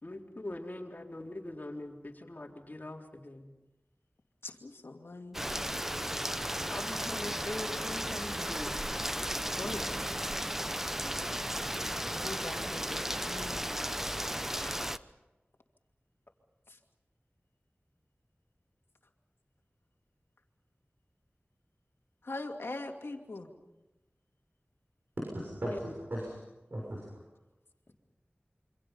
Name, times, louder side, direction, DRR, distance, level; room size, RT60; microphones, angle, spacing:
voice 1, 0.0-3.5 6.7-8.7 9.6-9.9 14.5-14.8 25.6-25.8, left 2 dB, 45° left, 0 dB, 4.0 m, -42 dB
voice 2, 4.4-5.4 11.9-13.9 22.2-23.5, left 2 dB, 85° left, 3 dB, 2.4 m, -42 dB
Rain, 5.3-15.0, equal, 10° right, 0.9 m, -35 dB
voice 3, 25.3-26.3 26.7-27.0, right 1 dB, 60° right, -3 dB, 6.6 m, -37 dB
27.5 x 25.5 x 5.6 m, 1.0 s
wide cardioid pair, 50°, 4 cm